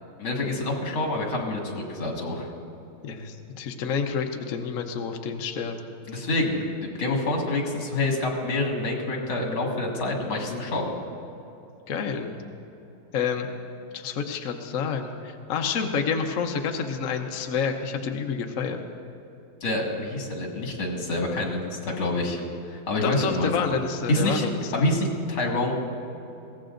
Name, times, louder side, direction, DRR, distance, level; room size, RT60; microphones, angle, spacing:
voice 1, 0.2-2.5 6.1-10.9 19.6-22.4 22.7-23.5 24.1-24.5 24.7-25.7, left 2 dB, 70° left, 0 dB, 2.7 m, -27 dB
voice 2, 3.0-5.9 11.9-12.3 13.1-13.5 13.9-18.8 23.0-24.8, left 6 dB, 55° left, 4 dB, 0.9 m, -29 dB
22.5 x 17.0 x 2.6 m, 2.9 s
omnidirectional pair, 2.3 m